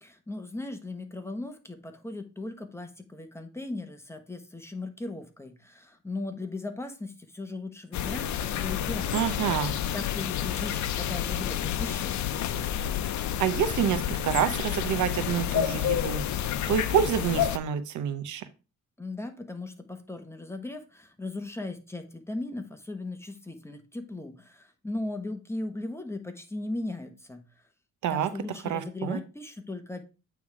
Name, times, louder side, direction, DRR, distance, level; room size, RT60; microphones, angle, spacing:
voice 1, 0.0-9.5 9.9-12.2 19.0-27.4 28.1-30.0, left 2 dB, 10° left, 6 dB, 1.2 m, -37 dB
sound 1, 7.9-17.6, left 10 dB, 70° left, 0.7 m, -29 dB
voice 2, 9.1-9.7 13.4-16.2 16.7-18.4 28.0-28.3 28.6-29.2, right 9 dB, 75° right, 12 dB, 0.8 m, -27 dB
8.5 x 3.6 x 4.8 m, 0.31 s
cardioid pair, 90°, 30 cm